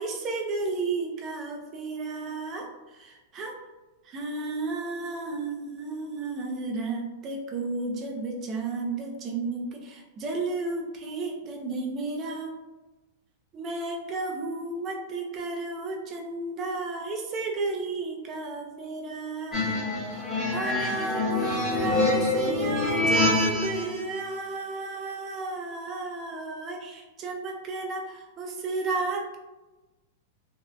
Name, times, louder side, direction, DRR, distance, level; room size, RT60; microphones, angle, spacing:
voice 1, 0.0-2.7 3.0-3.5 4.1-12.5 13.5-19.8 20.5-29.4, right 3 dB, 30° right, 1 dB, 0.5 m, -33 dB
sound 1, 19.5-24.0, left 2 dB, 15° left, 0.7 m, -26 dB
2.6 x 2.2 x 2.3 m, 1.1 s
supercardioid pair, 150°, 0 cm